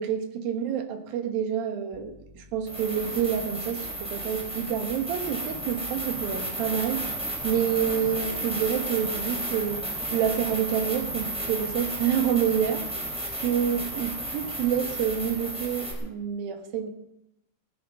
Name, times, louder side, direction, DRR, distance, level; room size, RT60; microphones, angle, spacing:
voice 1, 0.0-7.0 7.4-12.9 13.4-16.9, right 8 dB, 75° right, 6 dB, 3.1 m, -28 dB
sound 1, 1.9-2.0 2.6-15.9, right 1 dB, ahead, 3.7 m, -33 dB
19.0 x 10.5 x 5.6 m, 0.86 s
omnidirectional pair, 4.4 m